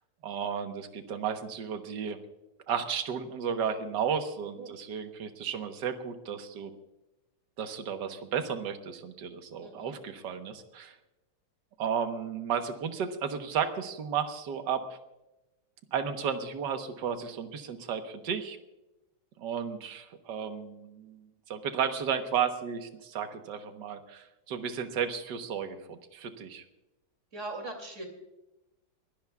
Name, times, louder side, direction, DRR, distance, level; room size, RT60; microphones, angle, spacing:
voice 1, 0.2-2.2 2.7-6.7 7.6-11.0 11.8-15.0 15.9-18.6 19.4-26.6, right 7 dB, 65° right, 7 dB, 1.8 m, -33 dB
voice 2, 9.5-9.9 27.3-28.1, right 2 dB, 40° right, 4 dB, 3.2 m, -40 dB
22.5 x 17.5 x 2.4 m, 0.98 s
omnidirectional pair, 2.1 m